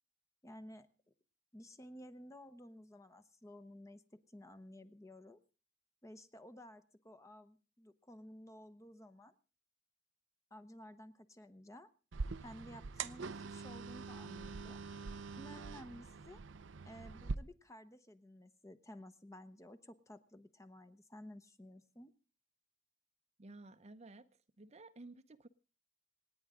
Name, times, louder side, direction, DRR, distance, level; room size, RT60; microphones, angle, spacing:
voice 1, 0.4-0.9 1.5-5.4 6.0-9.3 10.5-11.9 12.4-14.8 15.3-16.4 16.9-22.1, left 1 dB, 15° left, 0.9 m, -54 dB
sound 1, 12.1-17.4, right 4 dB, 85° right, 0.6 m, -44 dB
voice 2, 23.4-24.3 24.6-25.5, right 2 dB, 35° right, 0.7 m, -54 dB
27.0 x 9.6 x 3.7 m
head